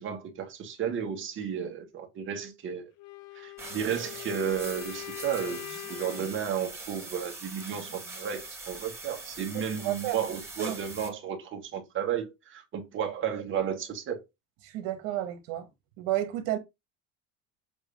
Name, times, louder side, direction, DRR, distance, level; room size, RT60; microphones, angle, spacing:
voice 1, 0.0-2.8 3.3-14.2, right 8 dB, 35° right, 1.8 m, -33 dB
Wind instrument woodwind instrument, 3.0-6.5, left 19 dB, 55° left, 0.8 m, -42 dB
sound 1, 3.6-11.1, right 2 dB, 5° right, 2.2 m, -43 dB
voice 2, 9.5-10.3 10.6-10.8 14.6-15.7 16.0-16.6, right 13 dB, 75° right, 1.9 m, -32 dB
8.0 x 3.1 x 5.3 m
cardioid pair, 160°, 34 cm